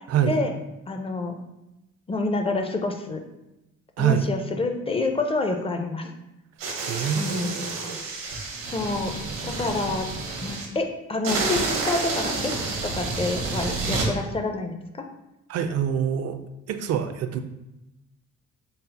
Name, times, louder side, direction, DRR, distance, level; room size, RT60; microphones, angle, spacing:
voice 1, 0.9-1.4 2.1-3.2 4.0-6.1 7.2-7.6 8.7-10.1 10.4-12.5 12.8-15.0, left 3 dB, 20° left, 5 dB, 0.5 m, -28 dB
voice 2, 4.0-4.3 6.8-8.0 15.5-16.4 16.7-17.4, right 8 dB, 55° right, 8 dB, 0.4 m, -25 dB
sound 1, 6.6-10.6 11.2-14.1, right 3 dB, 90° right, 1.0 m, -29 dB
4.1 x 2.0 x 4.0 m, 0.92 s
cardioid pair, 90°, 30 cm